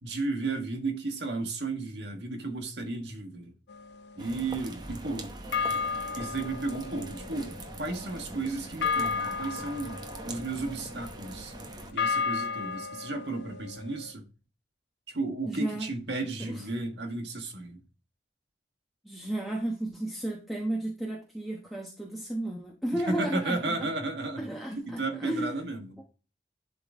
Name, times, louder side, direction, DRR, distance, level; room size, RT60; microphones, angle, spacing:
voice 1, 0.0-3.5 4.1-5.4 5.7-5.8 6.1-11.5 11.9-14.2 15.1-17.8 22.9-26.0, right 3 dB, 75° right, 1.7 m, -34 dB
sound 1, 3.7-5.0 5.5-14.1, left 5 dB, 75° left, 0.6 m, -34 dB
sound 2, 4.2-11.9, right 2 dB, 25° right, 0.8 m, -42 dB
voice 2, 15.5-15.9 16.4-16.6 19.0-23.9 24.4-25.6 26.0-26.1, right 1 dB, ahead, 1.1 m, -33 dB
11.0 x 3.9 x 3.7 m
head